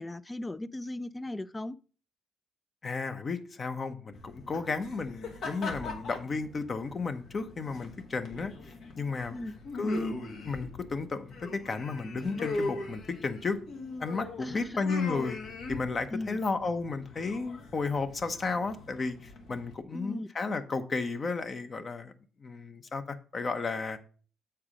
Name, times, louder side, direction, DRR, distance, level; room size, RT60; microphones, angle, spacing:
voice 1, 0.0-1.8 9.3-9.6 14.4-14.8 16.1-16.4 19.9-20.3, left 2 dB, 15° left, 0.4 m, -37 dB
voice 2, 2.8-8.5 9.0-9.4 9.8-10.1 10.4-13.6 14.0-15.4 15.7-22.1 22.4-24.0, left 4 dB, 40° left, 0.9 m, -33 dB
sound 1, 4.1-19.7, left 2 dB, 70° left, 1.5 m, -41 dB
7.3 x 4.7 x 5.0 m
cardioid pair, 80°, 0 cm